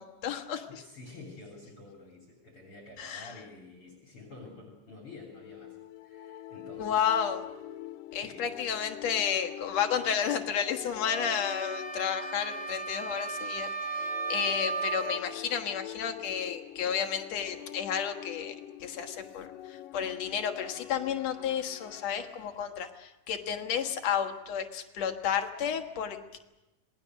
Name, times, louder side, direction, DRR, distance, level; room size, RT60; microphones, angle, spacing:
voice 1, 0.0-0.8 3.0-3.3 6.8-7.4 8.1-18.5 18.8-26.4, left 8 dB, 60° left, 5 dB, 2.4 m, -32 dB
voice 2, 0.7-5.8 6.0-7.0 8.1-8.5, left 3 dB, 40° left, 0 dB, 3.9 m, -49 dB
sound 1, 5.3-22.6, left 12 dB, 90° left, 2.6 m, -45 dB
sound 2, 11.0-15.3, right 4 dB, 35° right, 2.0 m, -35 dB
26.5 x 19.5 x 6.4 m, 0.98 s
omnidirectional pair, 3.8 m